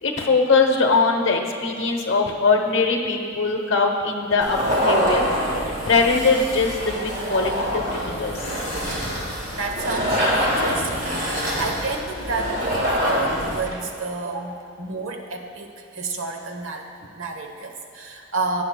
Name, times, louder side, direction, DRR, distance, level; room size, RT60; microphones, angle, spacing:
voice 1, 0.0-5.3 5.9-8.4, left 4 dB, 65° left, 3 dB, 0.9 m, -21 dB
sound 1, 4.4-13.7, equal, 40° right, 1.8 m, -25 dB
voice 2, 9.5-18.6, right 3 dB, 80° right, 4 dB, 1.0 m, -30 dB
15.5 x 9.7 x 2.2 m, 2.6 s
head